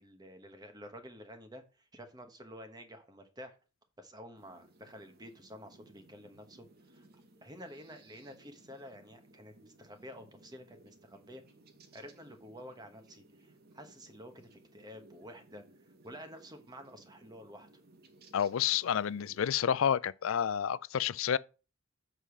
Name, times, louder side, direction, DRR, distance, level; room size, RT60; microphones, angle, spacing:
voice 1, 0.0-3.5 4.0-6.7 6.9-7.0 7.4-11.4 11.9-15.6 16.0-17.7, equal, 20° right, 1.1 m, -50 dB
sound 1, 4.4-19.5, right 2 dB, 45° right, 1.1 m, -61 dB
voice 2, 18.3-21.4, left 8 dB, 65° left, 0.4 m, -29 dB
7.6 x 4.9 x 5.0 m
head